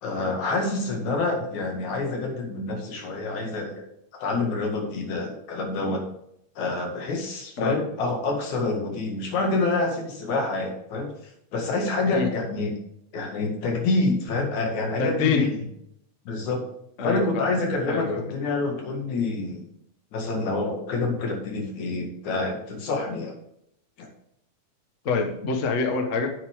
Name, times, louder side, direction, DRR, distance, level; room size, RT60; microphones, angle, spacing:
voice 1, 0.0-3.8 4.2-6.0 6.6-11.1 11.5-12.7 13.1-15.5 16.2-16.6 17.0-19.6 20.1-23.3 24.0-24.1, left 3 dB, 70° left, 1 dB, 3.4 m, -27 dB
voice 2, 15.0-15.5 17.0-17.5 17.9-18.3 25.0-26.3, left 4 dB, 90° left, 4 dB, 0.6 m, -25 dB
9.6 x 8.1 x 3.6 m, 0.76 s
omnidirectional pair, 3.6 m